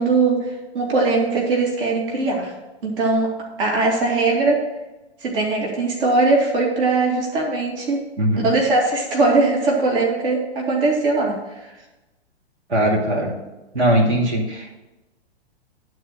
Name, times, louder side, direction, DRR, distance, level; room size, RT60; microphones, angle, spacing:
voice 1, 0.0-2.5 2.8-3.3 3.6-4.6 5.2-8.0 8.4-11.3 11.6-11.7, right 3 dB, 55° right, -2 dB, 2.7 m, -20 dB
voice 2, 8.2-8.5 12.7-13.3 13.7-14.7, right 1 dB, 80° right, -4 dB, 2.7 m, -20 dB
11.5 x 4.6 x 6.6 m, 1.0 s
figure-of-eight pair, 115°, 33 cm